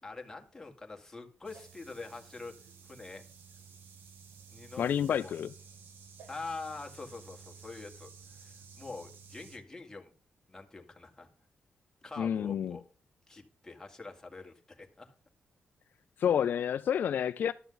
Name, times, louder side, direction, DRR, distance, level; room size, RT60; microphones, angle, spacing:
voice 1, 0.0-2.5 2.8-3.2 4.5-4.8 5.1-5.4 6.3-10.1 10.5-11.3 12.0-12.8 13.3-15.1, left 3 dB, 15° left, 1.9 m, -45 dB
sound 1, 1.4-9.6, right 6 dB, 85° right, 1.7 m, -53 dB
voice 2, 4.8-5.5 12.2-12.8 16.2-17.5, left 8 dB, 65° left, 0.3 m, -29 dB
12.0 x 6.9 x 3.9 m
cardioid pair, 95°, 3 cm